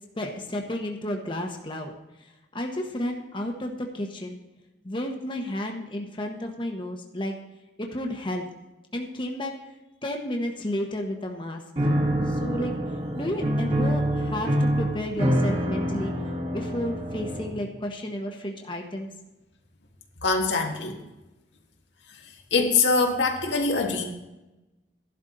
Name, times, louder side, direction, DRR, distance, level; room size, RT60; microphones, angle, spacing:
voice 1, 0.2-1.9 2.5-4.4 4.8-7.4 7.8-8.4 8.9-9.5 10.0-11.6 12.3-12.7 13.2-16.1 16.5-19.1, left 1 dB, 30° left, 2 dB, 1.0 m, -32 dB
Piano, 11.8-17.7, equal, 35° right, 1.6 m, -26 dB
voice 2, 20.2-21.0 22.1-24.0, left 4 dB, 85° left, 1 dB, 1.8 m, -24 dB
13.5 x 11.5 x 3.9 m, 1.0 s
head